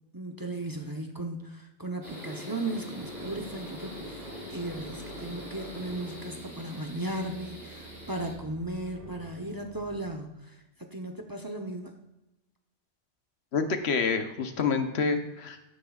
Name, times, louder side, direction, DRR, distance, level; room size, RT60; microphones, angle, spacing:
voice 1, 0.1-4.2 4.5-12.0, right 1 dB, 20° right, 4 dB, 0.8 m, -36 dB
sound 1, 2.0-8.3, equal, 45° right, 3.7 m, -42 dB
sound 2, 2.7-10.0, right 1 dB, 20° left, 3.7 m, -50 dB
voice 2, 13.5-15.7, left 5 dB, 75° left, 7 dB, 1.2 m, -28 dB
12.5 x 9.3 x 2.4 m, 0.96 s
omnidirectional pair, 1.1 m